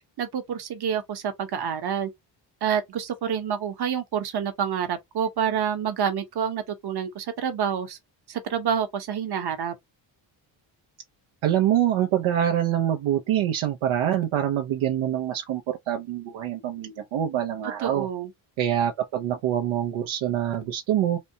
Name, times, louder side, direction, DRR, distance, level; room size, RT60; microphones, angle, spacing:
voice 1, 0.2-2.1 2.6-8.0 8.3-9.7 17.8-18.3, right 8 dB, 55° right, 1.2 m, -28 dB
voice 2, 11.4-18.1 18.6-21.2, right 11 dB, 75° right, 0.8 m, -25 dB
4.2 x 2.1 x 2.7 m
cardioid pair, 95°, 48 cm